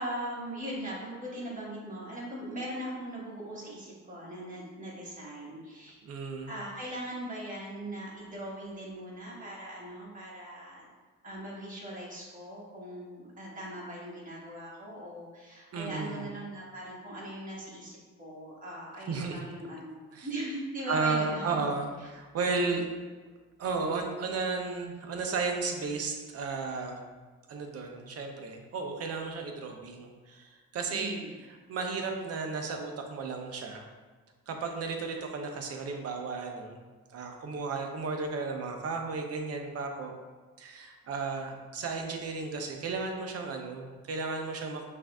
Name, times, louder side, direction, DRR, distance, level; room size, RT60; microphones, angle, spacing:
voice 1, 0.0-6.0 6.5-10.9 11.2-21.4 30.9-31.3, right 1 dB, 25° right, -6 dB, 1.4 m, -40 dB
voice 2, 6.0-6.5 15.7-16.3 19.1-19.4 20.1-20.3 20.9-22.9 23.6-27.0 27.5-31.2 31.5-33.8 34.5-36.8 37.1-40.1 40.6-44.8, right 4 dB, 55° right, 3 dB, 0.7 m, -34 dB
5.9 x 2.6 x 2.3 m, 1.4 s
cardioid pair, 90°, 30 cm